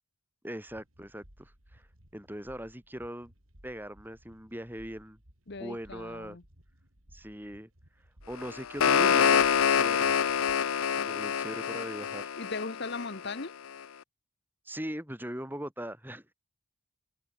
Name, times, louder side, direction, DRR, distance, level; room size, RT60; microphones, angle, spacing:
voice 1, 0.4-1.8 2.1-3.3 3.6-5.2 5.6-6.4 7.1-7.7 8.3-10.2 11.0-12.3 14.7-16.2, equal, 10° right, 5.7 m, -40 dB
sound 1, 0.7-10.5, equal, 75° right, 6.0 m, -59 dB
voice 2, 5.5-6.4 12.4-13.5, left 3 dB, 50° left, 1.1 m, -38 dB
sound 2, 8.4-13.4, left 7 dB, 80° left, 0.6 m, -26 dB
head